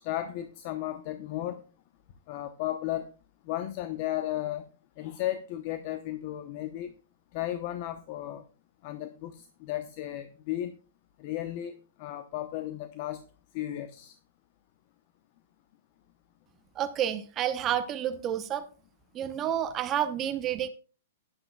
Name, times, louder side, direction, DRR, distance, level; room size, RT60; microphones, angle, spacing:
voice 1, 0.0-1.6 2.3-3.1 3.5-4.6 5.0-6.9 7.3-8.4 8.8-10.7 11.2-11.7 12.0-13.2 13.5-14.1, left 13 dB, 45° left, 10 dB, 0.8 m, -34 dB
voice 2, 16.7-18.7 19.1-20.7, right 10 dB, 25° right, 10 dB, 0.8 m, -30 dB
14.0 x 10.5 x 2.3 m, 0.35 s
hypercardioid pair, 140°, 0 cm